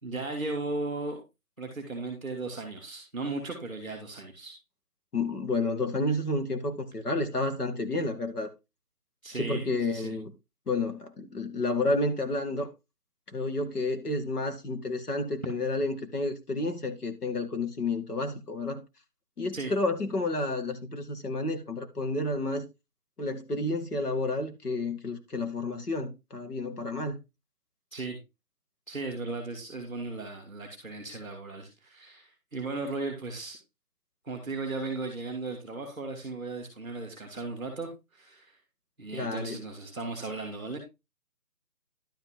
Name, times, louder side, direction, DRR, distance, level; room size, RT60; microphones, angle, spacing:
voice 1, 0.0-1.2 1.6-4.6 9.2-10.2 19.5-19.7 27.9-28.2 28.9-33.6 34.2-38.5 39.0-40.8, right 3 dB, 5° left, 1.8 m, -36 dB
voice 2, 5.1-8.5 9.3-10.3 10.7-12.7 13.3-18.8 19.4-22.7 23.2-27.2 39.1-39.6, left 2 dB, 75° left, 2.3 m, -30 dB
12.0 x 5.8 x 3.8 m
hypercardioid pair, 175°, 47 cm